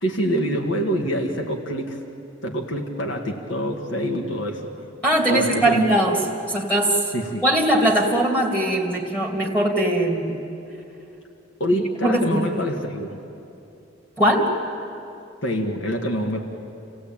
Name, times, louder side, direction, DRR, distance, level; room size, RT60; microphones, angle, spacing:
voice 1, 0.0-2.0 2.4-4.7 5.3-5.8 7.1-7.4 11.6-13.2 15.4-16.4, equal, 75° left, 2 dB, 1.9 m, -25 dB
voice 2, 5.0-6.2 6.5-7.0 7.4-10.4 12.0-12.6 14.2-14.5, right 1 dB, 5° left, -2 dB, 2.6 m, -20 dB
29.0 x 16.5 x 8.9 m, 2.8 s
head